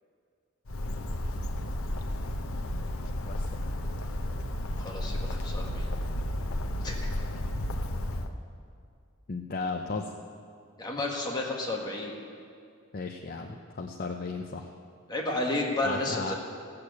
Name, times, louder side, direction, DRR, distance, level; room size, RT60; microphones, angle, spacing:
Bird, 0.7-8.3, left 1 dB, 85° left, 0.9 m, -32 dB
voice 1, 4.8-5.9 6.8-7.1 10.8-12.1 15.1-16.3, left 2 dB, 20° left, -1 dB, 1.6 m, -32 dB
voice 2, 9.3-10.1 11.0-11.1 12.9-14.7 15.8-16.3, left 4 dB, 45° left, 2 dB, 0.6 m, -35 dB
16.0 x 6.8 x 8.1 m, 2.3 s
head